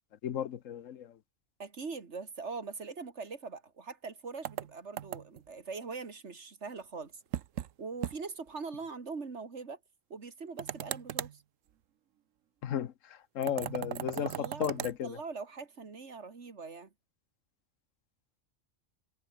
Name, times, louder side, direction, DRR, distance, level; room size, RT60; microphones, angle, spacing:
voice 1, 0.2-1.1 12.6-12.9 13.3-15.2, left 10 dB, 85° left, 1.3 m, -34 dB
voice 2, 1.6-7.1 7.8-9.8 10.1-11.4 14.1-16.9, right 4 dB, 65° right, 2.3 m, -42 dB
sound 1, 4.4-5.5 7.3-7.7 8.0-8.2 8.5-8.6 10.6-11.4 13.4-15.0, right 11 dB, 85° right, 1.2 m, -37 dB
omnidirectional pair, 1.3 m